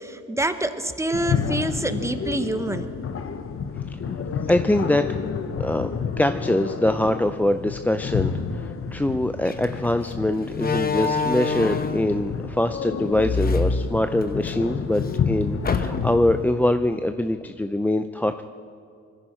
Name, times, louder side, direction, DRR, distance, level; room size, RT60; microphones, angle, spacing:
voice 1, 0.0-2.9, right 1 dB, 10° right, 9 dB, 1.0 m, -26 dB
sound 1, 1.1-16.4, left 6 dB, 45° left, 1.0 m, -30 dB
voice 2, 4.5-5.1 5.6-18.4, left 1 dB, 5° left, 8 dB, 0.4 m, -23 dB
Slam, 9.4-9.6 10.5-12.1 13.1-14.5 14.9-15.0 15.6-16.3, left 4 dB, 30° left, 0.9 m, -25 dB
21.0 x 15.0 x 4.4 m, 2.3 s
cardioid pair, 90°, 30 cm